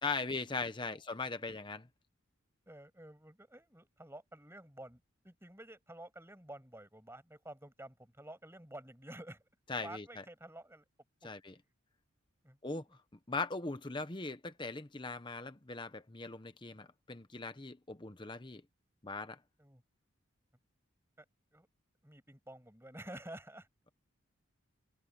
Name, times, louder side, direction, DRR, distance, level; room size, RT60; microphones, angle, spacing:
voice 1, 0.0-1.9 9.7-10.2 11.2-11.5 12.6-12.8 13.3-18.6 19.0-19.4, left 3 dB, 20° left, 0.9 m, -40 dB
voice 2, 2.7-9.4 9.8-10.8 11.2-11.4 12.4-12.6 19.6-19.8 21.2-21.3 21.5-21.7 22.0-23.7, right 1 dB, 10° right, 7.9 m, -51 dB
head